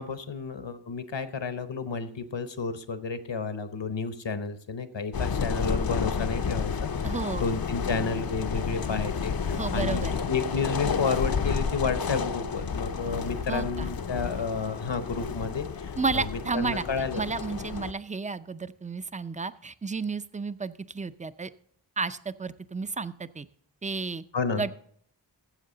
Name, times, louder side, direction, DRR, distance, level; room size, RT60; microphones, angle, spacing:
voice 1, 0.0-6.9 7.4-10.0 10.3-17.2 24.3-24.6, left 5 dB, 75° left, 11 dB, 1.0 m, -31 dB
sound 1, 5.1-17.9, left 6 dB, 55° left, 0.6 m, -31 dB
voice 2, 7.0-7.5 9.5-10.2 13.5-13.9 16.0-16.8 17.1-21.5 22.0-23.5 23.8-24.2 24.6-24.7, right 4 dB, 15° right, 14 dB, 0.4 m, -32 dB
14.5 x 7.6 x 3.9 m, 0.63 s
wide cardioid pair, 45°, 44 cm